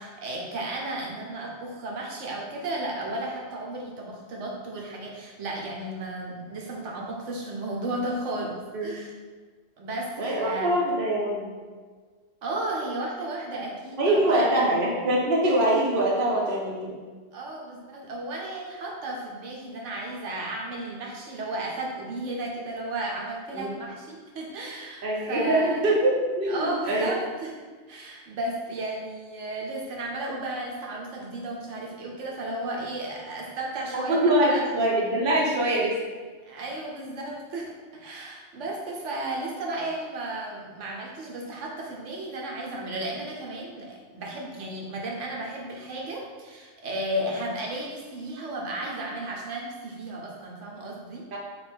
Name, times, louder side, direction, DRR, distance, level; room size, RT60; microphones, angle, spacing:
voice 1, 0.0-8.6 8.8-9.1 9.8-10.7 12.4-14.7 17.3-25.8 26.5-27.5 27.9-34.7 36.4-51.4, right 1 dB, 75° right, -1 dB, 1.1 m, -34 dB
voice 2, 10.2-11.5 14.0-16.9 23.5-23.7 25.0-27.1 33.9-35.9 47.2-47.3 51.3-51.4, right 1 dB, 50° right, -4 dB, 0.8 m, -24 dB
3.4 x 3.1 x 4.4 m, 1.5 s
omnidirectional pair, 1.3 m